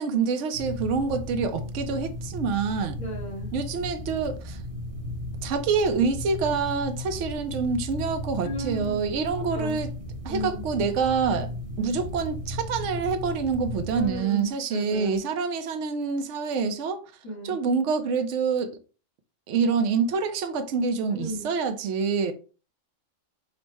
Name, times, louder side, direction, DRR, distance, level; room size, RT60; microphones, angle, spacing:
voice 1, 0.0-3.0 3.5-4.6 5.4-9.9 10.2-11.5 11.8-17.0 17.4-18.8 19.5-22.3, right 5 dB, 70° right, 1.0 m, -26 dB
sound 1, 0.5-14.2, left 1 dB, 30° right, 1.0 m, -35 dB
voice 2, 3.0-3.5 8.4-9.0 9.3-9.8 10.3-10.6 11.8-11.9 13.9-15.2 17.2-17.6 21.1-21.5, right 1 dB, 90° left, 2.0 m, -35 dB
5.5 x 2.1 x 4.5 m
omnidirectional pair, 1.4 m